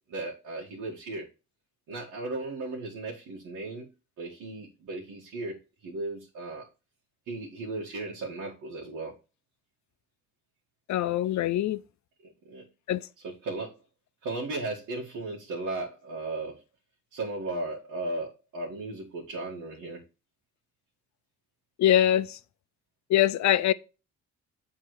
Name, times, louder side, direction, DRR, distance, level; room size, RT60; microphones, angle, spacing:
voice 1, 0.1-1.3 1.9-3.9 4.2-5.6 5.8-6.7 7.3-9.2 12.2-12.7 13.2-13.8 14.2-16.6 17.1-20.0, right 2 dB, 80° right, 1.9 m, -36 dB
voice 2, 10.9-11.8 12.9-13.0 21.8-22.4 23.1-23.7, left 12 dB, 65° left, 0.6 m, -23 dB
7.7 x 3.8 x 4.8 m
cardioid pair, 90°, 30 cm